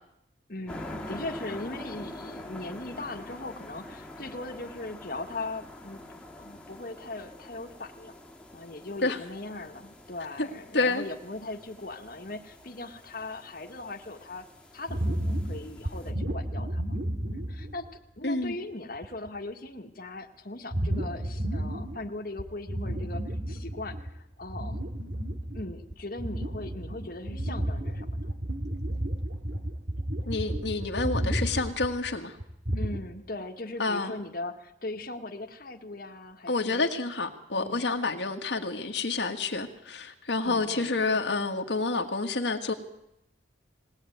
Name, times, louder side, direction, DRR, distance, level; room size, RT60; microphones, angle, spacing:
voice 1, 0.5-8.2 8.5-14.5 14.7-16.8 17.3-17.9 18.2-24.8 25.5-28.3 32.8-36.9 37.5-37.9 40.4-41.2, left 2 dB, 50° left, 1.8 m, -39 dB
sound 1, 0.7-16.1, left 1 dB, 5° left, 2.2 m, -45 dB
sound 2, 14.9-18.0 18.4-18.5 19.0-19.3 20.7-22.1 22.4-24.1 24.4-33.0, right 1 dB, 60° right, 2.8 m, -32 dB
voice 2, 18.2-18.5 30.3-32.4 33.8-34.1 36.5-42.7, left 3 dB, 65° left, 1.8 m, -28 dB
21.0 x 18.0 x 9.3 m
head